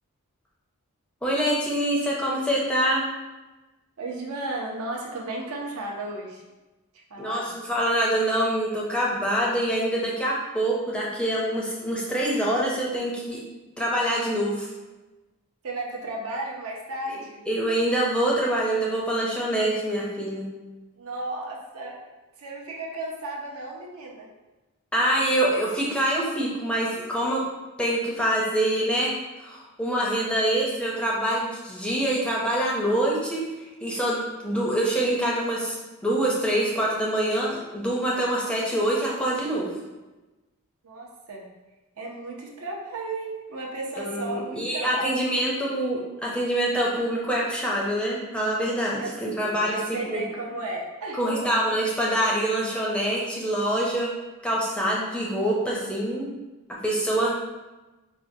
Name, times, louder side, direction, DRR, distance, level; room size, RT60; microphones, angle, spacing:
voice 1, 1.2-3.1 7.2-13.4 13.8-14.7 17.1-17.2 17.5-20.5 24.9-27.5 27.8-29.1 29.4-33.4 33.8-35.8 36.0-39.7 44.0-50.2 51.1-54.1 54.4-56.3 56.7-57.4, right 1 dB, 5° left, -4 dB, 0.5 m, -25 dB
voice 2, 4.0-6.4 7.1-7.5 15.6-17.4 21.0-22.0 22.4-24.3 40.8-41.5 42.0-45.1 49.0-51.6, right 2 dB, 65° right, -2 dB, 0.7 m, -34 dB
4.5 x 2.2 x 2.6 m, 1.1 s
head